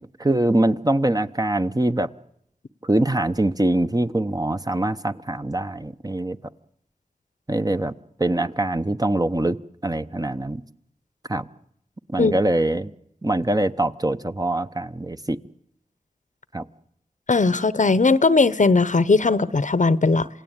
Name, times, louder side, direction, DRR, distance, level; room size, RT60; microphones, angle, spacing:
voice 1, 0.2-2.1 2.8-6.4 7.5-7.9 8.2-9.6 9.8-10.6 11.3-11.4 12.1-12.9 13.2-15.4 16.5-16.6, right 1 dB, 25° right, 1.0 m, -23 dB
voice 2, 17.3-20.3, left 3 dB, 60° left, 0.9 m, -18 dB
27.5 x 17.0 x 9.0 m
wide cardioid pair, 45°, 15 cm